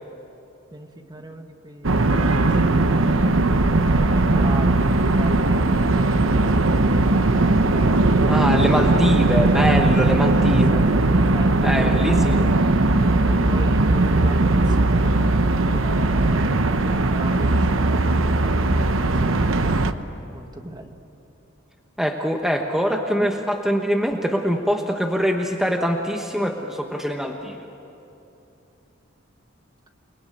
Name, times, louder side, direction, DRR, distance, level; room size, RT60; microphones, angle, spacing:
voice 1, 0.7-3.2 3.9-7.2 7.7-8.4 9.7-12.6 13.3-15.4 15.6-16.6 17.0-19.5 20.3-21.0, right 1 dB, 20° right, 5 dB, 1.4 m, -38 dB
sound 1, 1.8-19.9, right 2 dB, 80° right, 1.0 m, -19 dB
voice 2, 8.3-10.9 11.6-12.4 22.0-27.6, equal, ahead, 2 dB, 1.1 m, -23 dB
29.5 x 20.5 x 9.2 m, 2.8 s
head